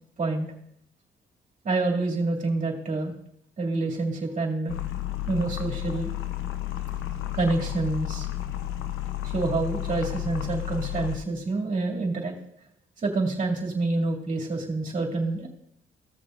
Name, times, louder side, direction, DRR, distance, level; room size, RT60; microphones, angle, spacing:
voice 1, 1.6-3.1 3.6-4.7 5.3-6.1 7.3-8.3 9.2-12.3 13.0-15.5, right 3 dB, 40° right, -2 dB, 2.3 m, -27 dB
sound 1, 4.7-11.2, left 13 dB, 85° left, 0.7 m, -32 dB
15.5 x 6.8 x 2.5 m, 0.70 s
cardioid pair, 90°, 20 cm